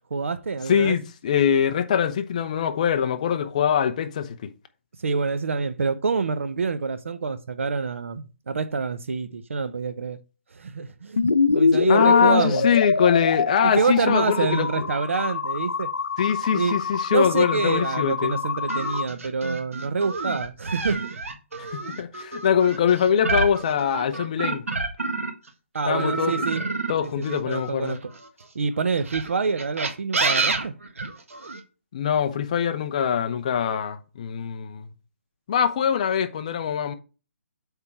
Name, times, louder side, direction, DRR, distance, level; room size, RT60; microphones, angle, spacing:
voice 1, 0.1-1.0 5.0-10.2 10.5-11.2 11.5-12.7 13.6-15.9 16.5-16.7 17.1-21.2 25.7-26.6 27.0-28.0 28.5-30.8, right 4 dB, 70° right, 0.9 m, -26 dB
voice 2, 0.7-4.5 11.9-14.9 16.2-18.4 21.6-24.6 25.9-26.5 26.9-28.0 31.9-34.9 35.5-36.9, left 8 dB, 30° left, 0.7 m, -23 dB
sound 1, 11.2-19.0, left 4 dB, 85° left, 0.8 m, -25 dB
sound 2, 18.7-25.5 25.9-28.3 29.0-31.6, right 3 dB, 85° right, 1.6 m, -28 dB
8.1 x 3.6 x 4.5 m
hypercardioid pair, 165°, 7 cm